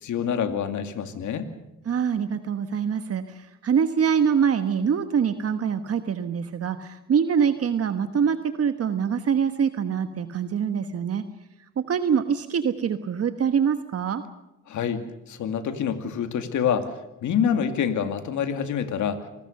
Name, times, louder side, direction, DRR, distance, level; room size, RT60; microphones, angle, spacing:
voice 1, 0.0-1.5 14.7-16.9 17.2-19.2, left 7 dB, 75° left, 8 dB, 2.4 m, -26 dB
voice 2, 1.8-11.2 11.8-14.2, right 7 dB, 50° right, 9 dB, 1.3 m, -24 dB
26.5 x 19.5 x 6.6 m, 0.94 s
cardioid pair, 90°, 30 cm